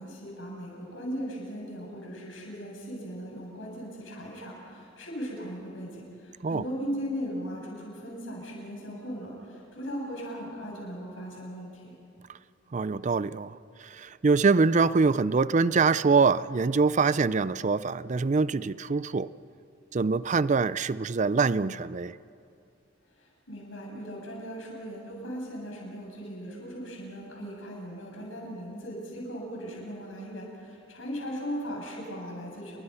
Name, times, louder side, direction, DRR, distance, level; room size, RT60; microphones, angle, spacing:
voice 1, 0.0-11.9 23.1-32.8, equal, 75° left, -2 dB, 7.8 m, -38 dB
voice 2, 12.7-19.3 19.9-22.2, right 4 dB, 40° right, 17 dB, 0.4 m, -24 dB
29.0 x 22.5 x 5.7 m, 2.5 s
head